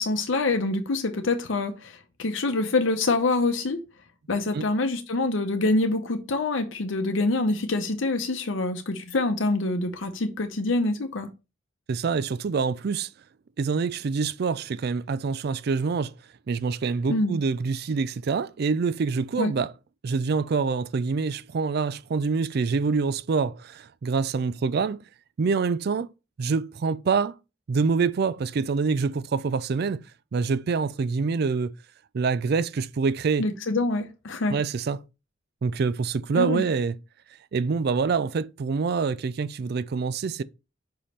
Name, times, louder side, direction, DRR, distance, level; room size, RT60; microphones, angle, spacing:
voice 1, 0.0-3.8 4.3-11.3 17.1-17.4 19.4-19.5 33.4-34.6 36.4-36.6, left 2 dB, 80° left, 0.8 m, -25 dB
voice 2, 11.9-13.1 13.6-16.1 16.5-19.7 20.0-25.0 25.4-26.1 26.4-27.4 27.7-30.0 30.3-31.7 32.1-33.5 34.5-35.0 35.6-37.0 37.5-40.4, right 5 dB, 55° right, 0.4 m, -26 dB
5.6 x 5.1 x 4.2 m
head